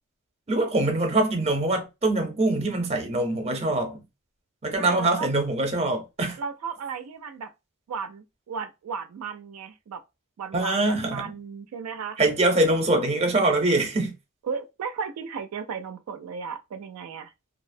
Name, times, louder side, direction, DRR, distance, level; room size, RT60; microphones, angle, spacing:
voice 1, 0.5-4.0 4.6-6.4 10.5-11.3 12.2-14.1, right 2 dB, 30° right, 0.6 m, -23 dB
voice 2, 4.8-5.3 6.4-7.5 7.9-10.0 10.4-12.2 14.5-17.3, right 6 dB, 80° right, 0.3 m, -35 dB
2.5 x 2.0 x 2.5 m
head